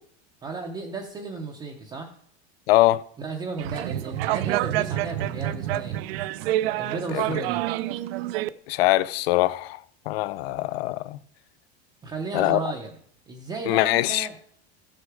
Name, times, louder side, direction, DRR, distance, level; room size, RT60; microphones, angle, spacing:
voice 1, 0.4-2.1 3.2-6.0 6.8-7.6 12.0-12.9 13.3-14.4, right 4 dB, 10° right, 0.5 m, -34 dB
voice 2, 2.7-3.0 7.1-7.2 8.7-9.8 10.1-11.2 12.3-12.6 13.7-14.3, left 17 dB, 65° left, 0.5 m, -22 dB
sound 1, 3.6-8.5, right 14 dB, 65° right, 0.5 m, -28 dB
14.0 x 6.6 x 4.6 m
supercardioid pair, 175°, 33 cm